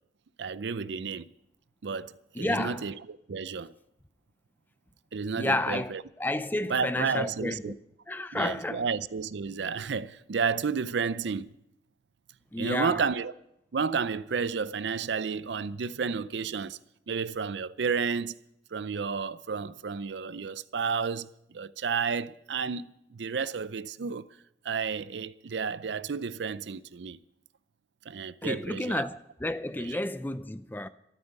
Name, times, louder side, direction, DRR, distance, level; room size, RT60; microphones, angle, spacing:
voice 1, 0.4-1.3 1.8-3.7 5.1-6.0 6.7-7.8 8.3-11.5 12.6-13.3 13.7-16.8 17.1-18.3 18.7-24.3 24.6-27.2 28.1-29.1 29.8-30.0, right 5 dB, 70° right, 0.5 m, -31 dB
voice 2, 2.4-2.8 5.4-5.9 6.2-7.8 8.1-8.8 12.5-13.0 28.4-30.9, left 1 dB, 10° left, 0.5 m, -31 dB
13.0 x 9.2 x 9.0 m
head